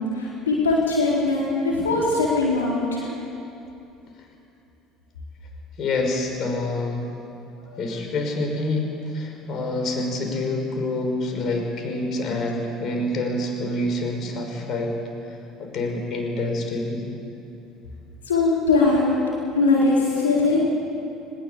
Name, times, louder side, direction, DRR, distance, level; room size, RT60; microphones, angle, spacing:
voice 1, 0.1-3.1 7.7-7.8 18.3-19.2 19.5-20.6, left 3 dB, 90° left, -4 dB, 4.3 m, -21 dB
voice 2, 5.8-7.1 7.8-14.9 15.2-17.0, left 2 dB, 50° left, 3 dB, 5.9 m, -27 dB
22.5 x 21.0 x 8.6 m, 2.8 s
hypercardioid pair, 65°, 0 cm